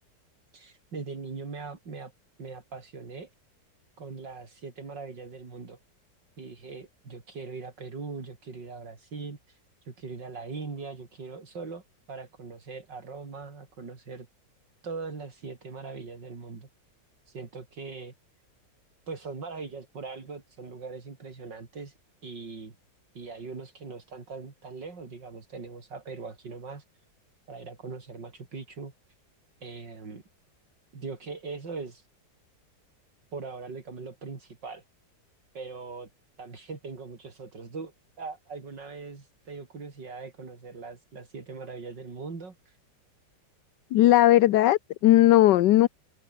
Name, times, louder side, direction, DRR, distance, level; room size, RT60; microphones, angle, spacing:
voice 1, 0.5-2.1 2.4-3.3 4.0-5.8 6.4-14.3 14.8-16.7 17.3-18.1 19.1-22.0 22.2-22.7 23.1-26.8 27.5-28.9 29.6-30.2 30.9-32.1 33.3-34.8 35.5-36.1 36.4-42.8, right 4 dB, 80° right, 4.2 m, -40 dB
voice 2, 43.9-45.9, left 14 dB, 75° left, 1.3 m, -18 dB
omnidirectional pair, 1.9 m